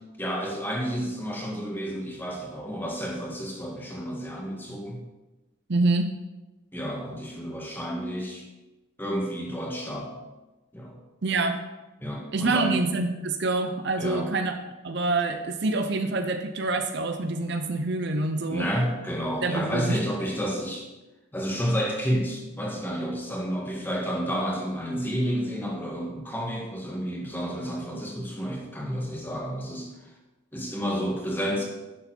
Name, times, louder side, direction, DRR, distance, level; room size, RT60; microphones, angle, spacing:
voice 1, 0.2-5.0 6.7-8.5 9.0-10.2 10.7-11.0 12.0-12.8 14.0-14.3 18.5-20.9 21.3-30.1 30.5-31.6, equal, 10° left, -1 dB, 1.7 m, -30 dB
voice 2, 5.7-6.1 11.2-11.6 12.3-14.6 14.8-18.7 19.4-20.0, right 2 dB, 55° right, 6 dB, 0.7 m, -26 dB
11.0 x 6.9 x 4.5 m, 1.1 s
head